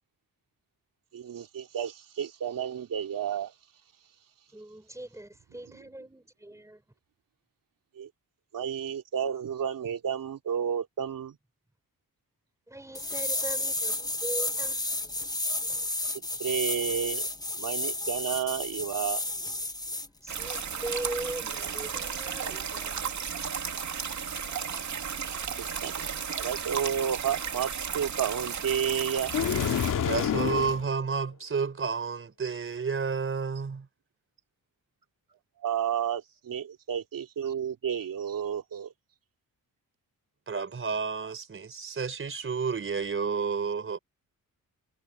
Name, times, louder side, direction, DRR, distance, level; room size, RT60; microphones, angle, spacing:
voice 1, 1.1-3.5 8.0-8.1 8.5-11.4 16.4-19.2 25.6-26.1 26.4-29.3 35.6-38.9, right 8 dB, 70° right, 3.0 m, -31 dB
voice 2, 4.5-6.8 12.7-15.0 20.2-23.1, right 1 dB, 10° right, 5.8 m, -40 dB
sound 1, 12.9-20.1 20.5-20.6, left 2 dB, 10° left, 1.2 m, -32 dB
sound 2, 20.3-29.9, right 7 dB, 55° right, 2.7 m, -34 dB
sound 3, 29.3-30.8, left 8 dB, 65° left, 2.2 m, -27 dB
voice 3, 30.0-33.9 40.5-44.0, right 5 dB, 40° right, 4.0 m, -31 dB
cardioid pair, 105°, 34 cm